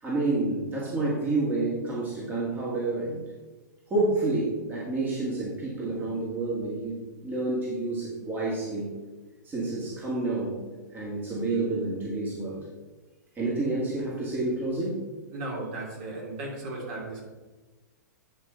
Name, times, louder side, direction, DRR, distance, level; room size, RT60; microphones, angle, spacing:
voice 1, 0.0-3.3 3.9-8.9 9.4-10.6 10.9-12.6 13.4-15.0, right 2 dB, 20° right, -5 dB, 2.1 m, -29 dB
voice 2, 15.3-17.3, right 2 dB, 45° right, -3 dB, 2.9 m, -36 dB
9.6 x 5.3 x 3.9 m, 1.2 s
hypercardioid pair, 125°, 10 cm